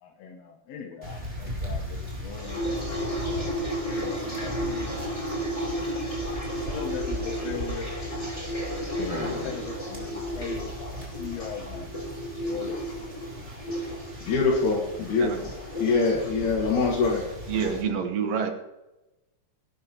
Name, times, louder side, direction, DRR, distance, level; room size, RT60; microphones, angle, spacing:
voice 1, 0.0-2.6 3.2-4.6 5.6-5.7 6.7-7.9 9.1-12.8, left 7 dB, 65° left, 2.0 m, -40 dB
sound 1, 1.0-17.8, equal, 20° right, 3.5 m, -38 dB
sound 2, 2.1-17.8, equal, 10° left, 3.4 m, -33 dB
voice 2, 9.0-9.5 14.2-15.5 15.8-17.2, left 4 dB, 80° left, 3.2 m, -24 dB
voice 3, 17.5-18.5, right 6 dB, 60° right, 2.4 m, -27 dB
19.0 x 12.0 x 3.0 m
omnidirectional pair, 3.4 m